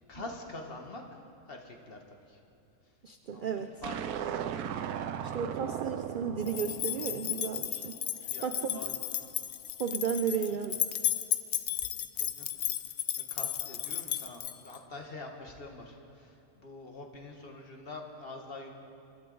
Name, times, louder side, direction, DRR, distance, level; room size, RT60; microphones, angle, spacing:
voice 1, 0.1-1.2 1.5-2.0 2.3-2.4 2.8-2.9 3.3-4.3 8.2-9.3 10.5-10.6 12.1-12.5 12.8-13.0 13.3-18.7, left 2 dB, 40° left, 3 dB, 1.4 m, -45 dB
voice 2, 3.0-3.7 5.3-7.9 8.4-8.8 9.8-10.8, right 7 dB, 70° right, 7 dB, 0.4 m, -33 dB
sound 1, 3.8-8.2, right 9 dB, 90° right, 1.2 m, -37 dB
sound 2, 6.5-14.8, left 11 dB, 85° left, 0.4 m, -34 dB
23.5 x 12.0 x 3.9 m, 2.8 s
omnidirectional pair, 1.6 m